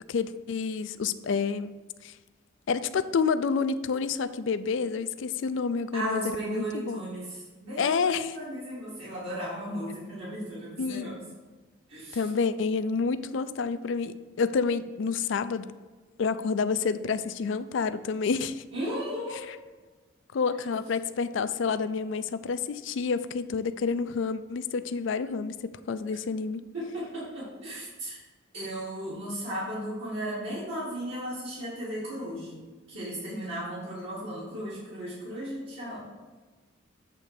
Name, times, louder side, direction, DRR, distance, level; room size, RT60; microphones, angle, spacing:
voice 1, 0.1-1.7 2.0-2.1 2.7-7.0 7.8-8.3 10.8-11.2 12.1-15.8 16.2-18.6 19.5-19.6 20.3-26.6, left 5 dB, 70° left, 13 dB, 0.4 m, -29 dB
voice 2, 5.9-11.2 11.9-12.3 18.7-19.5 26.7-28.2 28.5-32.6 32.9-36.1, right 1 dB, 70° right, -9 dB, 2.2 m, -35 dB
8.4 x 3.3 x 6.5 m, 1.3 s
head